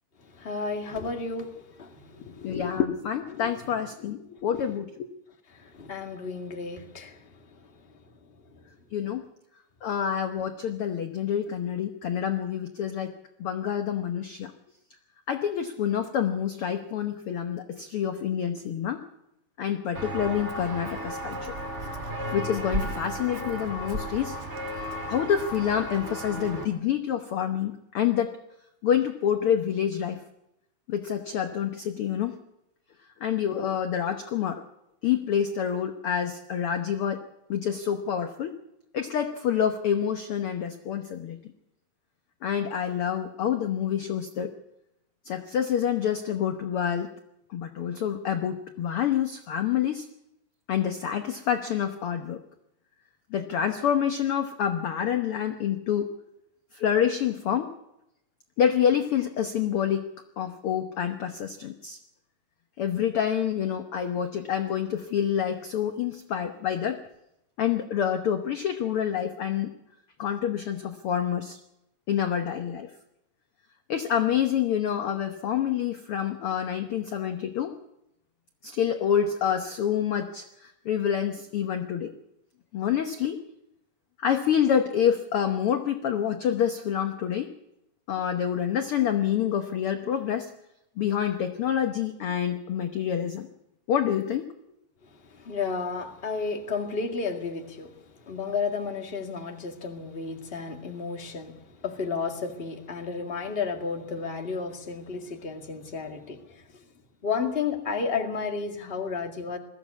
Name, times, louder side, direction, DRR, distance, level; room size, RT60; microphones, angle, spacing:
voice 1, 0.2-2.6 5.5-7.6 7.9-8.0 8.5-8.6 95.2-98.0 98.2-106.6 107.2-109.6, left 5 dB, 25° left, 3 dB, 1.6 m, -32 dB
voice 2, 2.2-5.1 8.9-9.2 9.8-14.5 15.3-19.0 19.6-21.6 22.3-24.4 25.1-28.3 28.8-30.2 30.9-32.4 33.2-34.6 35.0-37.2 37.5-38.5 38.9-41.4 42.4-44.5 45.2-47.1 47.5-50.1 50.7-52.4 53.3-56.1 56.7-57.7 58.6-60.0 60.4-62.0 62.8-67.0 67.6-69.7 70.2-71.6 72.1-72.9 73.9-77.7 78.6-82.1 82.7-83.4 84.2-87.5 88.1-90.5 91.0-93.5 93.9-94.5, left 9 dB, 65° left, 6 dB, 1.5 m, -27 dB
Walk footsteps, 19.9-26.6, right 1 dB, 25° right, 2.1 m, -34 dB
21.0 x 15.0 x 8.4 m, 0.85 s
omnidirectional pair, 3.8 m